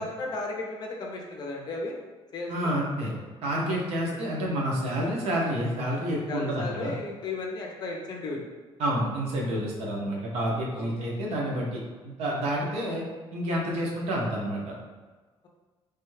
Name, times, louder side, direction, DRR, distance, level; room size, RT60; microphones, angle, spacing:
voice 1, 0.0-2.0 2.3-2.7 3.9-4.0 6.3-8.5 10.7-11.1 12.6-12.7, left 2 dB, 40° left, 0 dB, 0.5 m, -35 dB
voice 2, 2.5-3.1 3.4-7.0 8.8-13.0 13.3-14.7, equal, 75° right, -3 dB, 0.7 m, -29 dB
3.3 x 2.2 x 3.2 m, 1.3 s
cardioid pair, 160°, 11 cm